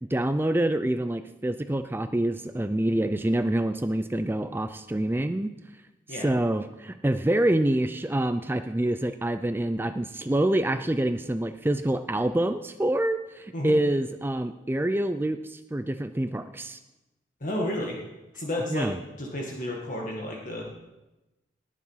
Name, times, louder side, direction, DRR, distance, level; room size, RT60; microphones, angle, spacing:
voice 1, 0.0-5.5 6.2-16.8 18.7-18.9, right 1 dB, 10° right, 10 dB, 0.4 m, -26 dB
voice 2, 17.4-18.0 18.3-20.8, left 1 dB, 45° left, -1 dB, 1.9 m, -32 dB
19.0 x 7.4 x 5.7 m, 1.0 s
head